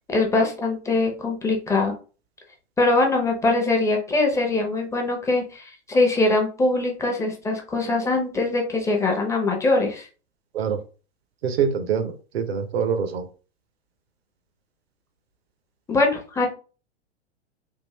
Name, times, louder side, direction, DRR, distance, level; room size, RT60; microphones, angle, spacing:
voice 1, 0.1-1.9 2.8-10.1 15.9-16.5, left 2 dB, 10° left, 2 dB, 0.7 m, -22 dB
voice 2, 11.4-13.3, right 7 dB, 65° right, 8 dB, 0.8 m, -25 dB
3.6 x 2.4 x 3.0 m, 0.36 s
figure-of-eight pair, 105°, 34 cm